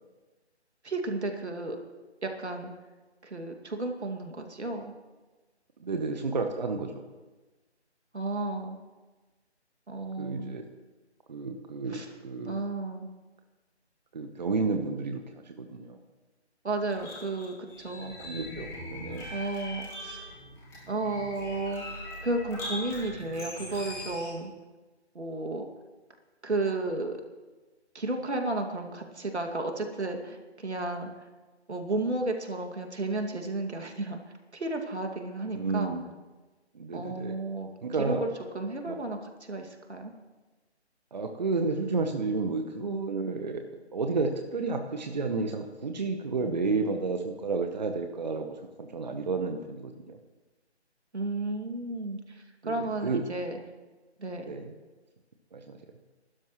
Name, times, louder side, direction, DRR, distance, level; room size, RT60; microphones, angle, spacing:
voice 1, 0.8-1.8 2.2-2.7 3.2-4.9 8.1-8.8 9.9-10.6 11.9-12.1 12.5-13.1 16.6-18.1 19.3-20.3 20.9-24.5 25.1-25.6 26.4-27.2 27.9-31.3 31.7-34.2 34.5-35.9 36.9-37.7 38.0-38.3 38.5-40.1 51.1-53.6 54.2-54.5, right 2 dB, 75° right, 4 dB, 2.4 m, -33 dB
voice 2, 5.8-7.0 10.2-10.7 11.3-12.6 14.1-16.0 18.2-19.3 35.5-36.1 36.7-37.4 37.8-38.3 38.9-39.0 41.1-43.6 43.9-50.2 52.6-53.2 54.4-54.7 55.5-55.8, right 4 dB, 40° right, 5 dB, 1.0 m, -31 dB
sound 1, 16.9-24.3, left 1 dB, 10° left, 5.2 m, -41 dB
28.5 x 12.5 x 3.1 m, 1.2 s
figure-of-eight pair, 155°, 34 cm